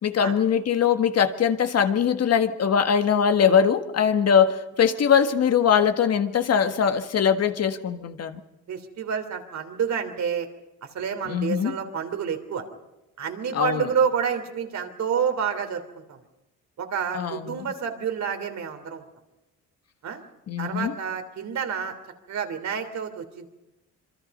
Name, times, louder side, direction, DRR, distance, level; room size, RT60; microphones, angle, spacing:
voice 1, 0.0-8.4 11.3-11.7 13.5-13.8 17.1-17.7 20.5-20.9, left 7 dB, 55° left, 8 dB, 1.7 m, -21 dB
voice 2, 8.7-10.5 10.8-12.7 13.2-16.2 16.8-19.0 20.0-20.2 20.6-21.9 22.3-23.5, right 7 dB, 65° right, 6 dB, 3.2 m, -29 dB
26.5 x 23.0 x 5.4 m, 0.98 s
cardioid pair, 90°, 30 cm